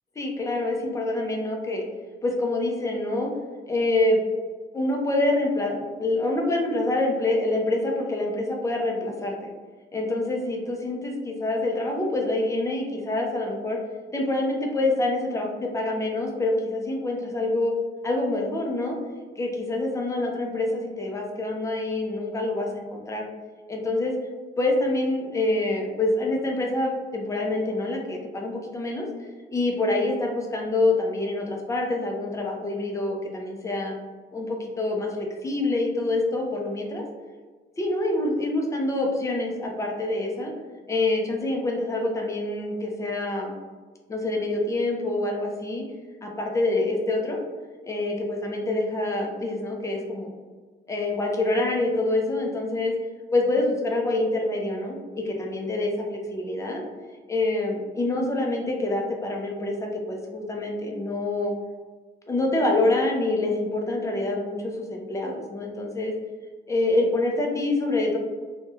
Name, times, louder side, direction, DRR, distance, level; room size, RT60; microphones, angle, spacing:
voice 1, 0.2-1.8 2.2-3.3 3.7-4.2 4.7-9.3 9.9-13.8 14.1-17.7 18.0-19.0 19.4-23.2 23.7-24.1 24.6-29.1 29.5-33.9 34.3-37.0 37.8-40.5 40.9-43.6 44.1-45.8 46.2-47.4 47.8-50.3 50.9-52.9 53.3-56.8 57.3-61.5 62.3-66.1 66.7-68.2, left 2 dB, 15° left, 0 dB, 0.3 m, -26 dB
3.0 x 2.1 x 2.2 m, 1.4 s
wide cardioid pair, 170°, 20 cm